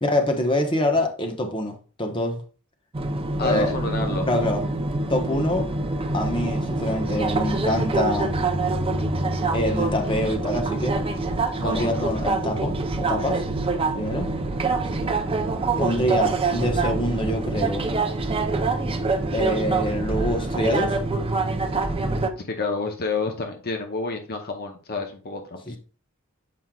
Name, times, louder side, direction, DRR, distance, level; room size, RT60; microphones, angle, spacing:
voice 1, 0.0-2.4 3.4-3.7 4.3-4.6 5.1-5.7 6.1-8.3 9.5-11.0 11.6-13.4 13.9-14.3 15.8-17.9 19.3-21.0 25.7-25.8, left 1 dB, 25° left, 4 dB, 1.1 m, -25 dB
sound 1, 2.9-22.3, right 3 dB, 25° right, 0.6 m, -25 dB
voice 2, 3.4-4.3 11.6-12.1 14.9-15.3 22.4-25.8, left 3 dB, 45° left, 4 dB, 0.9 m, -29 dB
7.6 x 5.3 x 2.4 m, 0.37 s
head